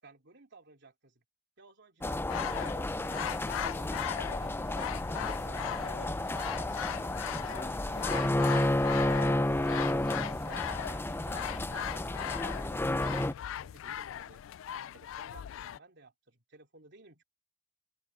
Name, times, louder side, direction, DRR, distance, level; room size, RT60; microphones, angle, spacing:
voice 1, 0.0-1.2 1.6-4.1 4.4-8.6 9.0-14.4 14.7-17.2, right 3 dB, 60° right, 3.3 m, -57 dB
sound 1, 2.0-13.3, left 1 dB, 10° left, 0.6 m, -31 dB
sound 2, 2.3-15.8, left 10 dB, 80° left, 0.3 m, -39 dB
open air
head